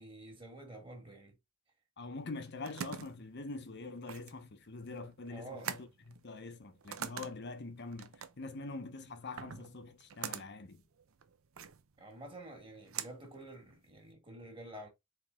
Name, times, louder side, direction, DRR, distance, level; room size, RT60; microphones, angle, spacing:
voice 1, 0.0-1.4 5.3-5.7 12.0-14.9, right 1 dB, 25° right, 1.6 m, -49 dB
voice 2, 2.0-10.8, left 3 dB, 50° left, 0.9 m, -44 dB
sound 1, 2.2-14.1, right 8 dB, 65° right, 0.6 m, -46 dB
4.4 x 3.4 x 3.5 m
head